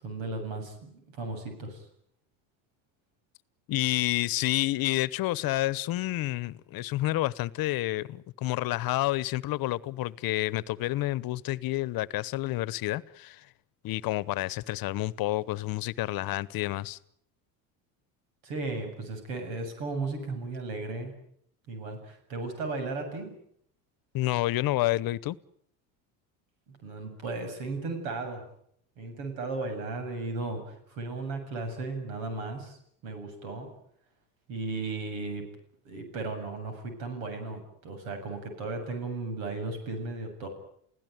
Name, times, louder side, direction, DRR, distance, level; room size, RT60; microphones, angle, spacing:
voice 1, 0.0-1.8 18.4-21.1 21.7-23.3 26.7-28.4 29.0-32.8 33.0-33.7 34.5-35.4 35.8-40.5, right 3 dB, 85° right, 7 dB, 7.7 m, -35 dB
voice 2, 3.7-13.5 13.8-17.0 24.1-25.4, left 17 dB, 60° left, 20 dB, 1.0 m, -29 dB
29.5 x 16.5 x 9.4 m, 0.69 s
supercardioid pair, 95°, 41 cm